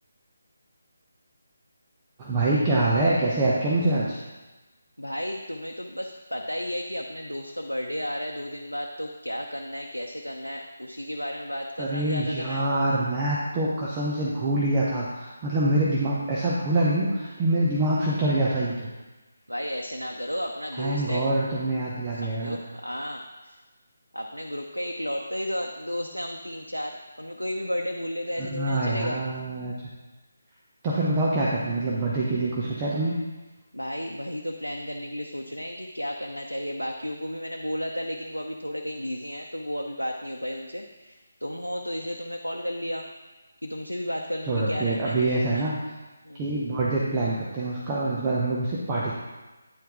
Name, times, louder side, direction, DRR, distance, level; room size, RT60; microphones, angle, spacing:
voice 1, 2.2-4.2 11.8-18.9 20.7-22.6 28.4-29.7 30.8-33.1 44.5-45.7 46.3-49.1, right 2 dB, 20° right, -5 dB, 0.8 m, -25 dB
voice 2, 5.0-12.6 19.5-21.3 22.1-23.6 24.1-29.2 33.7-43.1 43.6-45.7 46.2-46.4, equal, 85° left, 1 dB, 0.6 m, -33 dB
9.3 x 4.6 x 3.6 m, 1.2 s
figure-of-eight pair, 150°, 0 cm